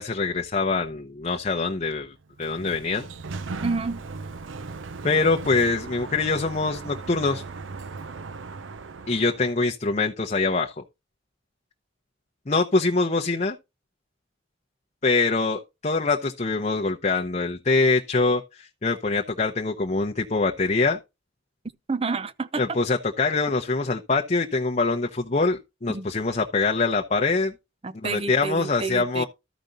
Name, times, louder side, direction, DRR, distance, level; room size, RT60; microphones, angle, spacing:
voice 1, 0.0-3.1 5.0-7.4 9.1-10.8 12.5-13.6 15.0-21.0 22.6-27.5 28.0-29.2, left 3 dB, 35° left, 0.8 m, -24 dB
Sliding door, 2.2-9.6, right 4 dB, 90° right, 0.6 m, -37 dB
voice 2, 3.6-4.0 21.9-22.6 25.9-26.1 27.8-29.2, right 4 dB, 30° right, 0.6 m, -29 dB
13.5 x 5.1 x 3.9 m
head